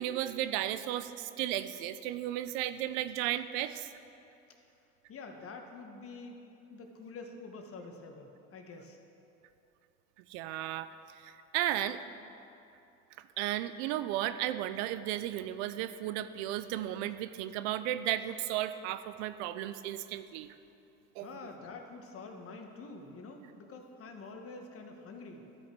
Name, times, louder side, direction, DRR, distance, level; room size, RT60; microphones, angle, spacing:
voice 1, 0.0-3.9 10.3-10.9 11.2-12.0 13.4-20.5 21.2-21.3, right 13 dB, 80° right, 13 dB, 0.5 m, -34 dB
voice 2, 5.1-6.4 6.7-9.0 21.2-25.5, left 3 dB, 40° left, 3 dB, 1.2 m, -47 dB
13.0 x 5.8 x 4.4 m, 2.8 s
supercardioid pair, 85°, 34 cm